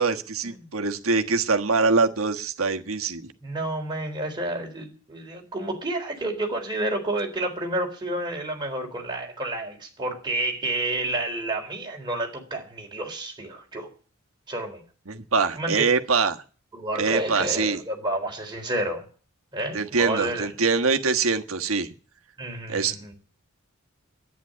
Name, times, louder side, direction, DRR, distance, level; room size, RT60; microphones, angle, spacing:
voice 1, 0.0-3.2 15.1-16.4 17.0-17.8 19.7-21.9 22.7-22.9, right 4 dB, 90° right, 6 dB, 1.3 m, -24 dB
voice 2, 3.4-13.9 14.5-14.8 15.6-15.9 16.7-19.1 19.5-20.5 22.4-23.1, right 1 dB, 20° right, 1 dB, 3.9 m, -30 dB
11.0 x 9.3 x 9.9 m, 0.40 s
head